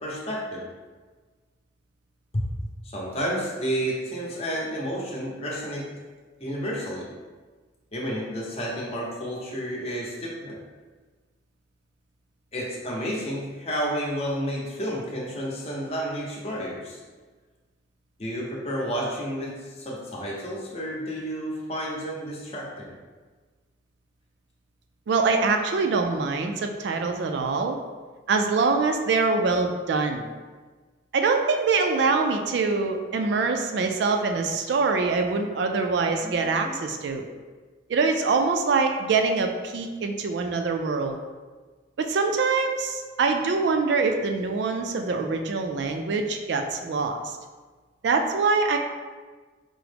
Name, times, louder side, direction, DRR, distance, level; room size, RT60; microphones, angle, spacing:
voice 1, 0.0-0.7 2.3-2.4 2.9-5.9 6.4-7.1 7.9-10.6 12.5-17.0 18.2-22.9 36.2-36.8, equal, 30° left, -4 dB, 0.7 m, -31 dB
voice 2, 25.1-27.8 28.3-30.3 31.1-37.3 37.9-41.2 42.0-47.3 48.0-48.8, right 4 dB, 60° right, 4 dB, 0.3 m, -24 dB
4.7 x 2.0 x 3.3 m, 1.4 s
head